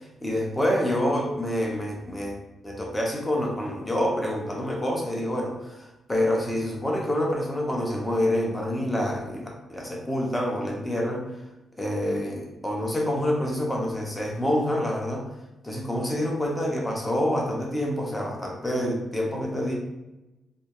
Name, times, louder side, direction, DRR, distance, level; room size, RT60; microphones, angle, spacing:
voice 1, 0.2-2.4 2.6-11.2 11.8-15.3 15.6-19.7, left 1 dB, 15° left, -1 dB, 0.7 m, -27 dB
2.6 x 2.2 x 2.2 m, 1.0 s
cardioid pair, 70°, 0 cm